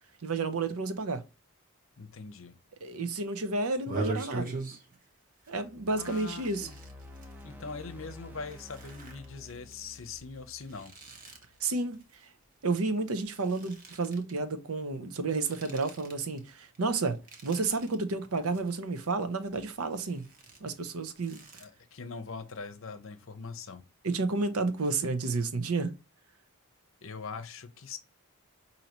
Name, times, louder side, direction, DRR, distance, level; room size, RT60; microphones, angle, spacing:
voice 1, 0.2-1.2 2.8-4.6 5.5-6.7 11.6-12.3 12.6-20.3 20.6-21.4 24.0-25.9, right 3 dB, 75° right, 0.7 m, -31 dB
voice 2, 2.0-2.5 6.0-6.7 7.4-10.9 21.6-23.8 27.0-28.0, left 4 dB, 60° left, 0.7 m, -42 dB
sound 1, 3.8-5.1 5.4-5.6 5.9-7.4 8.0-12.8 13.1-14.3 15.2-16.4 16.7-17.9 18.3-19.1 19.4-21.7, right 2 dB, 35° right, 1.0 m, -42 dB
sound 2, 5.5-11.7, left 2 dB, 10° right, 0.5 m, -51 dB
5.3 x 2.8 x 2.9 m
head